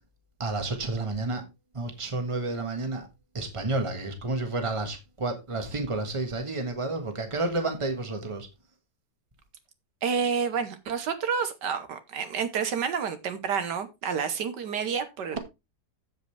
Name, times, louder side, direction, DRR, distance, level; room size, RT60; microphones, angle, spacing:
voice 1, 0.4-1.4 1.7-3.1 3.3-8.5 15.3-15.4, right 2 dB, 20° right, 1.5 m, -30 dB
voice 2, 10.0-15.4, right 6 dB, 75° right, 1.7 m, -29 dB
15.0 x 5.3 x 3.3 m
omnidirectional pair, 1.9 m